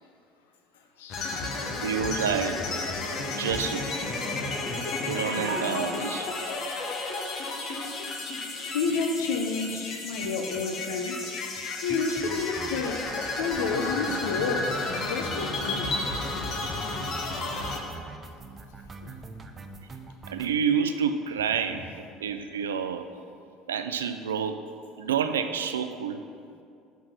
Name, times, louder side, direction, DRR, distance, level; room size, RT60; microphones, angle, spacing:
voice 1, 1.0-1.7 4.3-4.4 8.0-8.2 8.5-11.2 11.8-13.1 13.4-16.0 19.0-19.1, left 4 dB, 80° left, 4 dB, 0.7 m, -30 dB
sound 1, 1.1-17.8, left 3 dB, 55° left, 1.1 m, -32 dB
voice 2, 1.8-2.6 3.3-3.9 5.0-6.3 20.3-21.9 22.2-23.1 23.7-24.6 25.0-26.2, right 7 dB, 90° right, 9 dB, 0.4 m, -28 dB
sound 2, 9.7-9.9 10.2-10.3 10.6-10.7 10.9-11.0 11.2-20.6, right 3 dB, 30° right, 0.6 m, -44 dB
6.0 x 4.6 x 6.4 m, 2.4 s
hypercardioid pair, 70°, 0 cm